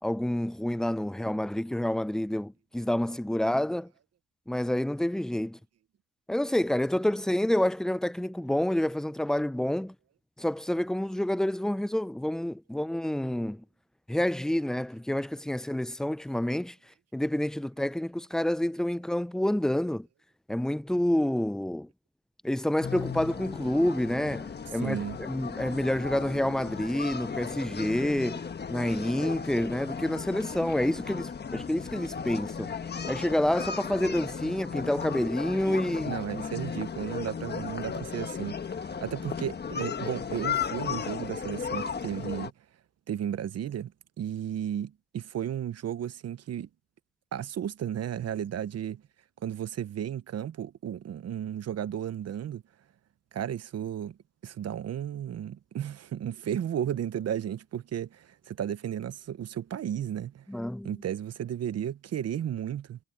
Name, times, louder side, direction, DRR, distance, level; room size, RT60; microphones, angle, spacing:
voice 1, 0.0-3.9 4.5-5.6 6.3-9.9 10.4-13.6 14.1-16.8 17.1-20.1 20.5-21.9 22.4-32.7 33.1-36.2 60.5-61.0, left 1 dB, ahead, 0.5 m, -28 dB
sound 1, 22.8-42.5, left 6 dB, 35° left, 1.4 m, -35 dB
voice 2, 24.8-25.2 36.1-42.5 43.1-43.9 44.2-46.7 47.3-49.0 49.4-52.6 53.3-54.2 54.4-60.4 60.8-63.0, right 10 dB, 55° right, 1.0 m, -34 dB
cardioid pair, 90°, 30 cm